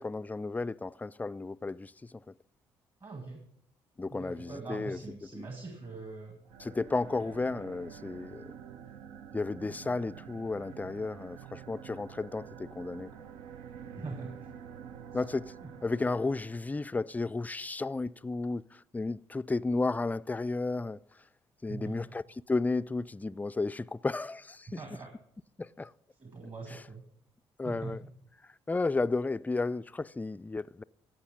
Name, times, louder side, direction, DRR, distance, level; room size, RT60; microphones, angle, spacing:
voice 1, 0.0-2.2 4.0-5.0 5.4-5.5 6.6-8.5 9.3-13.1 15.1-15.5 15.8-21.0 21.6-22.2 22.5-24.7 25.6-25.9 27.6-28.0 28.7-30.8, left 3 dB, 10° left, 0.3 m, -33 dB
voice 2, 3.0-3.4 4.1-6.4 7.2-7.3 14.0-14.5 15.1-15.2 15.6-15.7 21.7-22.1 24.7-25.1 26.2-27.0 27.6-28.1, right 3 dB, 40° right, 2.1 m, -43 dB
sound 1, 6.4-16.9, right 8 dB, 75° right, 0.6 m, -48 dB
15.5 x 5.7 x 5.2 m
hypercardioid pair, 45°, 13 cm